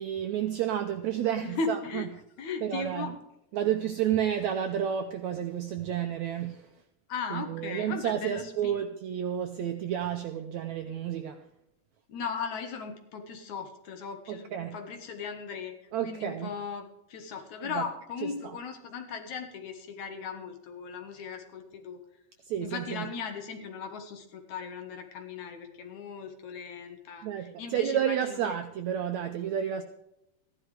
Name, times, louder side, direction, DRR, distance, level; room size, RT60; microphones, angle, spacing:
voice 1, 0.0-2.0 2.6-3.1 3.5-6.7 7.3-11.4 14.3-14.8 15.9-16.5 17.7-17.8 18.4-18.6 22.4-23.1 27.2-29.8, right 10 dB, 75° right, 7 dB, 1.7 m, -31 dB
voice 2, 1.4-2.1 2.4-3.2 7.1-8.8 12.1-15.7 16.0-22.0 22.6-28.5, left 5 dB, 60° left, 5 dB, 2.6 m, -37 dB
15.0 x 11.0 x 4.9 m, 0.85 s
omnidirectional pair, 4.1 m